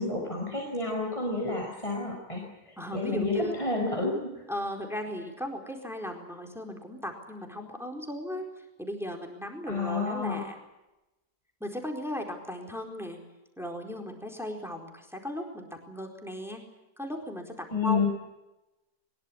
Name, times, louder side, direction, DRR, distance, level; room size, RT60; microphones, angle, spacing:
voice 1, 0.0-4.5 9.7-10.4 17.7-18.1, left 3 dB, 20° left, 0 dB, 5.1 m, -30 dB
voice 2, 2.8-3.6 4.5-10.5 11.6-13.2 13.6-16.6 17.0-18.1, equal, ahead, 2 dB, 4.3 m, -37 dB
22.5 x 22.0 x 8.7 m, 0.98 s
omnidirectional pair, 1.6 m